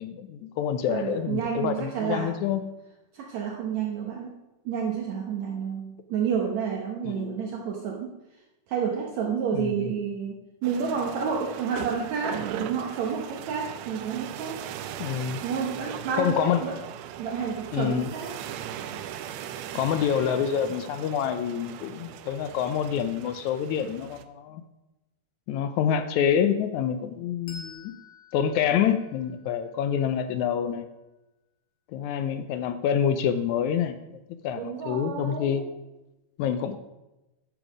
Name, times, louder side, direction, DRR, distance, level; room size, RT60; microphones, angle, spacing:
voice 1, 0.0-2.6 7.0-7.4 9.5-9.9 15.0-15.4 16.1-16.6 17.7-18.1 19.7-24.6 25.5-27.9 28.3-30.9 31.9-34.0 34.4-35.6 36.4-36.8, left 8 dB, 80° left, 9 dB, 1.7 m, -27 dB
voice 2, 0.9-2.3 3.1-4.4 4.7-8.1 8.7-14.6 15.4-16.7 17.2-18.3 34.6-35.7, right 7 dB, 65° right, 0 dB, 2.0 m, -30 dB
sound 1, 10.6-24.2, right 10 dB, 90° right, 1.5 m, -39 dB
Bell, 27.5-30.5, left 3 dB, 55° left, 2.6 m, -50 dB
10.5 x 7.0 x 5.0 m, 1.0 s
omnidirectional pair, 3.8 m